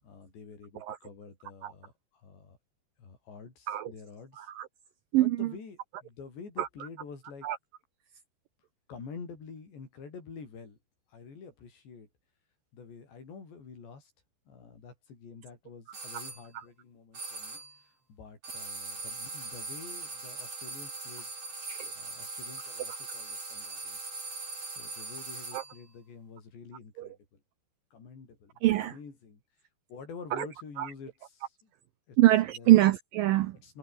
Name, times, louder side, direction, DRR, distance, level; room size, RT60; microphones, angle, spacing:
voice 1, 0.0-2.6 3.0-4.5 5.2-7.5 8.9-10.8 11.1-12.1 12.7-14.1 14.5-21.3 22.0-24.1 24.7-27.4 27.9-29.4 29.9-31.7 32.1-32.2 32.5-32.7 33.5-33.8, left 5 dB, 90° left, 8.8 m, -48 dB
voice 2, 4.4-4.7 5.1-5.5 6.6-6.7 7.4-7.6 21.7-21.9 25.5-25.6 27.0-27.1 28.6-28.9 30.3-30.5 30.8-30.9 32.2-33.6, right 16 dB, 80° right, 2.0 m, -24 dB
sound 1, 15.9-16.4 17.1-17.8 18.4-25.8, right 3 dB, 35° right, 7.6 m, -40 dB
omnidirectional pair, 4.9 m